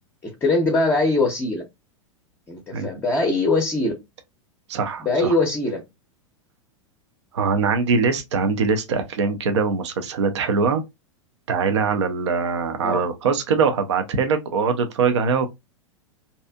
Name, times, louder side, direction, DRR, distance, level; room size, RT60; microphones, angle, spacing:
voice 1, 0.2-1.6 2.5-3.9 5.0-5.8 12.8-13.0, left 2 dB, 15° left, 0.6 m, -21 dB
voice 2, 4.7-5.3 7.3-10.8 11.5-15.5, right 5 dB, 60° right, 0.5 m, -22 dB
2.7 x 2.4 x 2.3 m
figure-of-eight pair, 95°, 16 cm